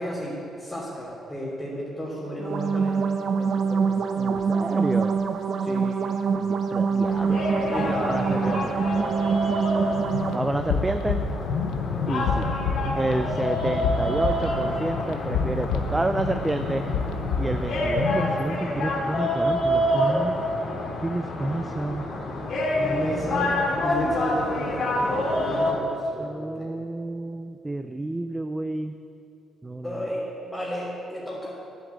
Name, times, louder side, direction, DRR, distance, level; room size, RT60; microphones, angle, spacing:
voice 1, 0.0-3.1 3.4-4.0 5.6-6.0 7.7-8.3 22.7-26.7 29.8-31.5, equal, 10° left, -8 dB, 3.1 m, -33 dB
sound 1, 2.4-10.4, right 5 dB, 60° right, 0.8 m, -25 dB
voice 2, 4.2-5.2 6.4-8.8 10.3-11.2 12.1-12.5 13.0-16.9 17.4-20.4 21.0-22.1 22.8-24.0 26.2-28.9 29.6-30.0, right 2 dB, 15° right, 8 dB, 0.5 m, -30 dB
sound 2, 7.0-25.7, left 1 dB, 60° left, 2.5 m, -28 dB
sound 3, 9.9-18.4, left 5 dB, 90° left, 1.0 m, -29 dB
11.0 x 8.3 x 8.3 m, 2.6 s
cardioid pair, 90°, 0 cm